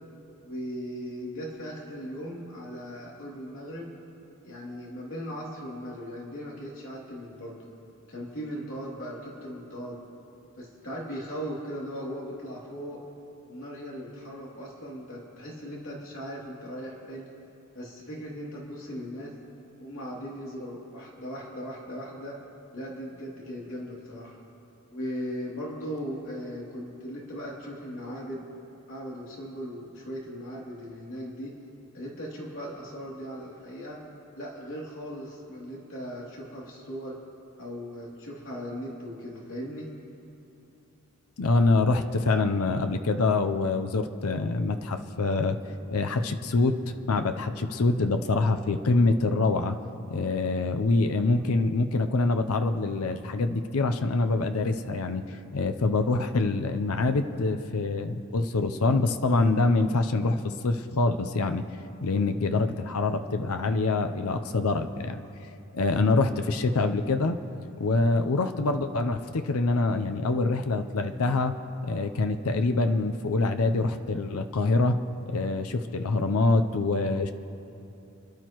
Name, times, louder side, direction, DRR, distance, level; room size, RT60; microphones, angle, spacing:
voice 1, 0.4-3.9 4.4-7.7 8.1-10.0 10.6-13.0 13.4-17.3 17.7-19.3 19.8-22.4 22.7-24.4 24.9-28.4 28.9-31.6 31.9-34.0 34.3-37.2 37.6-39.9, equal, 65° left, -4 dB, 2.9 m, -38 dB
voice 2, 41.4-45.6 45.9-46.8 47.1-49.8 50.1-61.6 62.0-65.2 65.7-67.4 67.8-71.6 71.8-75.0 75.3-77.3, left 3 dB, 85° left, 7 dB, 0.6 m, -25 dB
30.0 x 11.0 x 3.0 m, 2.8 s
head